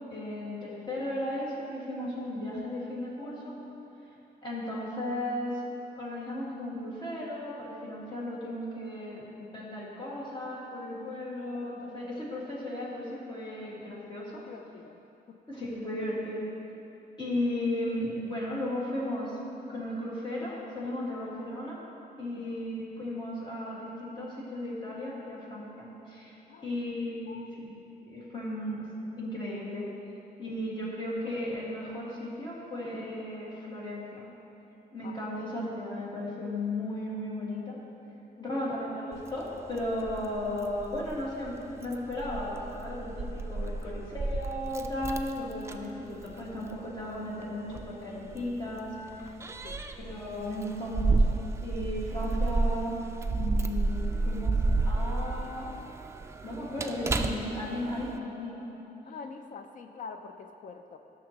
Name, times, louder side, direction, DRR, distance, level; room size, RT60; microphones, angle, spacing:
voice 1, 0.1-3.6 4.4-5.6 6.0-14.4 15.5-16.5 17.2-19.4 19.7-21.8 22.2-27.7 28.0-28.9 29.2-29.9 30.4-34.3 34.9-37.8 38.4-49.4 50.0-53.0 53.3-54.5 54.9-55.7 56.4-58.7, left 1 dB, 30° left, -6 dB, 1.9 m, -35 dB
voice 2, 14.5-15.0 15.3-15.4 21.1-21.2 22.3-22.6 26.5-26.8 27.3-27.7 35.0-35.2 38.4-38.5 43.8-44.1 49.6-49.9 59.0-61.0, left 5 dB, 55° left, 7 dB, 0.4 m, -46 dB
Keys jangling, 39.1-58.2, right 3 dB, 15° right, 0.3 m, -32 dB
13.0 x 6.4 x 2.9 m, 2.9 s
wide cardioid pair, 145°, 16 cm